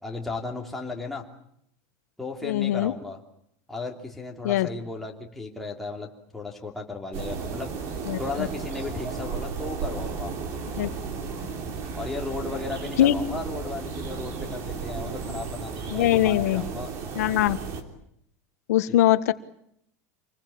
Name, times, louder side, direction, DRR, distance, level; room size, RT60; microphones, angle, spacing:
voice 1, 0.0-1.2 2.2-3.2 3.7-7.7 8.2-10.3 12.0-16.9 18.9-19.0, left 3 dB, ahead, -1 dB, 3.0 m, -35 dB
voice 2, 2.4-2.9 4.4-4.7 8.1-8.5 10.8-10.9 13.0-13.1 15.9-16.6 17.2-17.6 18.7-19.3, left 13 dB, 80° left, 11 dB, 1.5 m, -22 dB
sound 1, 7.1-17.8, right 5 dB, 35° right, 3.2 m, -34 dB
27.0 x 20.5 x 8.7 m, 0.71 s
supercardioid pair, 175°, 8 cm